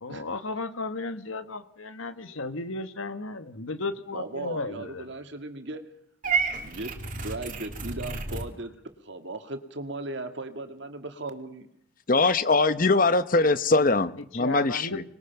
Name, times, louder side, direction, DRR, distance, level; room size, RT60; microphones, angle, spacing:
voice 1, 0.0-5.0 14.4-15.0, left 3 dB, 80° left, 1.5 m, -34 dB
voice 2, 4.1-5.8 6.6-8.7 9.0-11.7, right 2 dB, 60° right, 2.1 m, -37 dB
Purr / Meow, 6.2-8.5, right 5 dB, 40° right, 2.4 m, -30 dB
voice 3, 12.1-15.0, left 3 dB, 40° left, 0.9 m, -22 dB
25.0 x 21.0 x 5.9 m
head